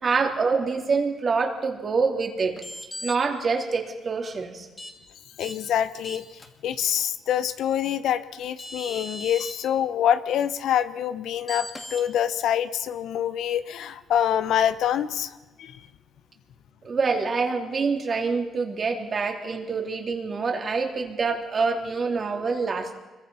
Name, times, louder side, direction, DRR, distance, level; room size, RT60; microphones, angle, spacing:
voice 1, 0.0-2.6 3.0-4.7 16.8-22.9, right 4 dB, 45° right, 3 dB, 3.2 m, -26 dB
sound 1, 2.6-3.1 4.8-4.9 5.4-5.5 6.0-6.5 8.1-8.2 8.6-9.5 11.5-12.0, left 1 dB, 20° left, 2.6 m, -37 dB
voice 2, 5.4-6.2 6.6-15.8, left 9 dB, 75° left, 13 dB, 0.9 m, -26 dB
25.0 x 22.5 x 5.6 m, 1.2 s
cardioid pair, 90°, 0 cm